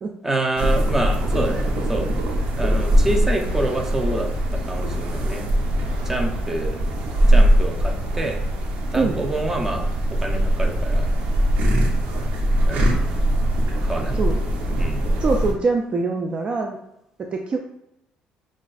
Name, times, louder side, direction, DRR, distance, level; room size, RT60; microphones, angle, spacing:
voice 1, 0.2-2.1 2.6-5.4 6.0-6.8 7.3-8.4 8.9-9.9 10.2-11.1 12.7-12.9 13.8-14.5 14.8-15.0, right 2 dB, 15° right, 1 dB, 0.8 m, -27 dB
sound 1, 0.6-15.5, equal, 75° right, 0.9 m, -21 dB
voice 2, 15.2-16.8 17.2-17.6, right 3 dB, 40° right, 3 dB, 0.4 m, -23 dB
5.9 x 2.4 x 2.5 m, 0.82 s
cardioid pair, 95°, 3 cm